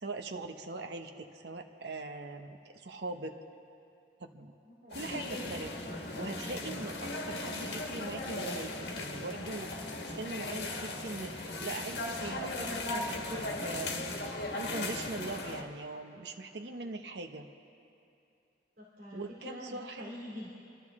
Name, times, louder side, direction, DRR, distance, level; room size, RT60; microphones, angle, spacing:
voice 1, 0.0-3.3 4.2-4.5 4.9-5.7 6.2-9.7 10.0-14.1 14.5-17.5 19.1-20.0, right 3 dB, 75° right, 5 dB, 0.9 m, -41 dB
voice 2, 4.6-5.2 18.8-20.5, equal, 50° right, -5 dB, 2.5 m, -45 dB
sound 1, 4.9-15.6, left 2 dB, 70° left, 1.6 m, -37 dB
28.0 x 12.5 x 3.6 m, 2.7 s
head